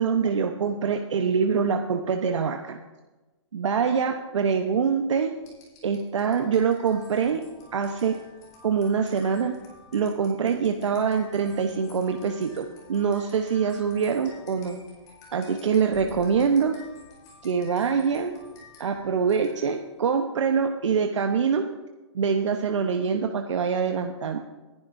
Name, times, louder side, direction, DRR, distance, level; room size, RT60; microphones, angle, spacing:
voice 1, 0.0-2.8 3.5-5.3 5.8-7.4 7.7-8.2 8.6-9.5 9.9-14.8 15.3-16.8 17.4-18.3 18.8-21.6 22.1-24.4, right 6 dB, 75° right, 4 dB, 1.0 m, -24 dB
sound 1, 5.4-19.9, left 3 dB, 25° left, 5.0 m, -51 dB
20.5 x 11.0 x 2.7 m, 1.1 s
hypercardioid pair, 155°, 16 cm